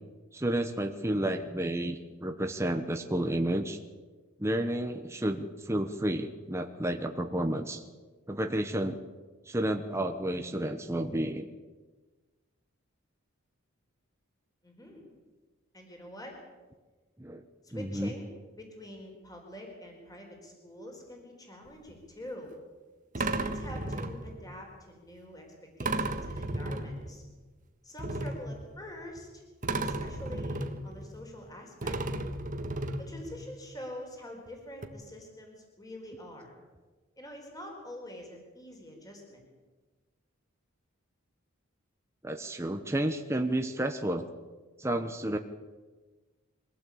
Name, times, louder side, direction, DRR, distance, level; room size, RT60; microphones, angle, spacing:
voice 1, 0.3-3.8 4.4-7.8 8.3-9.0 9.5-11.5 17.2-17.4 17.7-18.1 42.2-44.3 44.8-45.4, right 1 dB, 15° right, 5 dB, 1.1 m, -31 dB
voice 2, 14.6-15.0 15.7-16.4 17.6-22.5 23.2-25.5 25.8-27.2 27.8-29.4 29.8-32.0 33.0-36.6 37.2-39.4, left 1 dB, 15° left, 1 dB, 4.5 m, -45 dB
sound 1, 21.7-21.9 23.1-24.5 25.8-27.3 28.0-29.2 29.6-31.5 31.8-33.5 34.5-34.6 34.8-34.9, right 2 dB, 40° right, 1.6 m, -34 dB
23.5 x 16.5 x 8.6 m, 1.3 s
head